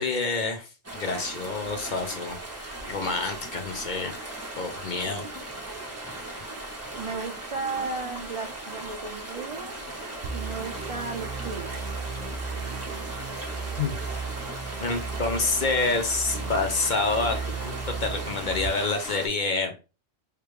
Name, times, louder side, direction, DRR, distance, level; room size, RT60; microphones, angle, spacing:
voice 1, 0.0-2.4 2.9-4.1 4.6-5.2 13.8-14.0 14.8-19.7, left 3 dB, 50° left, 5 dB, 0.8 m, -28 dB
sound 1, 0.8-19.3, right 1 dB, 15° right, 0.9 m, -38 dB
voice 2, 7.0-9.7 10.3-11.9, right 4 dB, 50° right, 3 dB, 0.4 m, -35 dB
sound 2, 10.2-18.7, right 4 dB, 75° right, 0.9 m, -35 dB
3.3 x 3.3 x 3.2 m, 0.30 s
omnidirectional pair, 1.1 m